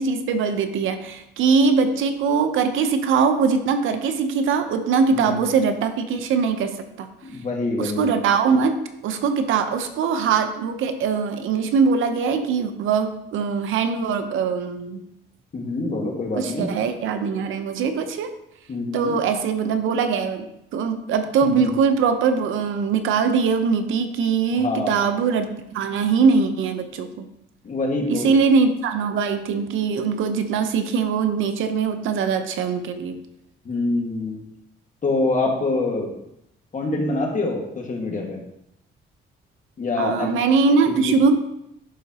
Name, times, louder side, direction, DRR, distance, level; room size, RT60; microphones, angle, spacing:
voice 1, 0.0-7.1 7.8-15.0 16.4-18.3 18.9-20.5 20.7-27.3 28.1-33.2 40.0-41.4, right 5 dB, 85° right, 8 dB, 0.7 m, -22 dB
voice 2, 5.1-5.5 7.2-8.2 15.5-16.7 18.7-19.1 21.4-21.7 24.5-25.0 27.6-28.3 33.6-34.4 35.0-36.1 36.7-38.4 39.8-40.3 40.9-41.2, left 2 dB, 40° left, 0 dB, 1.7 m, -25 dB
11.5 x 4.0 x 2.9 m, 0.80 s
cardioid pair, 90°, 20 cm